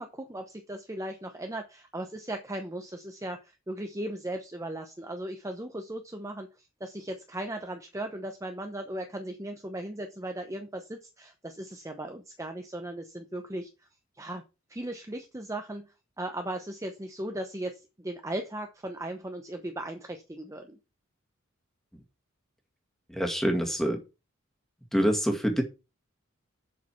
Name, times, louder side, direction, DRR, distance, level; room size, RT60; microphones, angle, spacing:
voice 1, 0.0-13.7 14.2-14.4 14.7-20.8, right 1 dB, 15° right, 5 dB, 0.8 m, -37 dB
voice 2, 23.1-24.0 24.9-25.6, equal, ahead, 3 dB, 1.9 m, -26 dB
7.5 x 6.6 x 5.9 m, 0.29 s
head